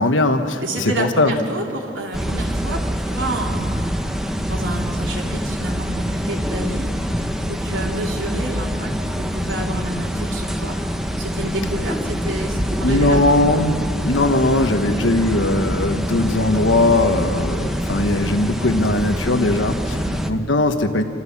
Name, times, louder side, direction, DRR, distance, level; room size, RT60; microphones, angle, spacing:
voice 1, 0.0-1.3 12.8-20.0 20.3-21.0, left 2 dB, 75° left, 7 dB, 1.3 m, -19 dB
voice 2, 0.6-4.2 4.5-6.9 7.4-8.9 9.2-10.8 11.2-13.4 19.9-20.2, right 1 dB, 85° right, -1 dB, 3.1 m, -29 dB
sound 1, 2.1-20.3, equal, ahead, 0.8 m, -25 dB
27.5 x 14.0 x 7.3 m, 2.7 s
head